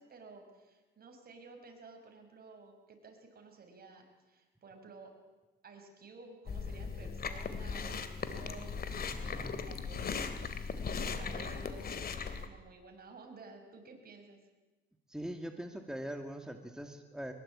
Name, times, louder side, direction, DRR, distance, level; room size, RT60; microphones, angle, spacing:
voice 1, 0.0-5.1 5.6-14.4, right 3 dB, 50° right, 4 dB, 6.4 m, -53 dB
Chewing mastication, 6.5-12.5, left 5 dB, 50° left, 2.8 m, -38 dB
voice 2, 9.1-9.6 15.1-17.3, right 1 dB, 5° right, 5 dB, 2.3 m, -42 dB
23.5 x 22.0 x 8.8 m, 1.2 s
cardioid pair, 90°, 20 cm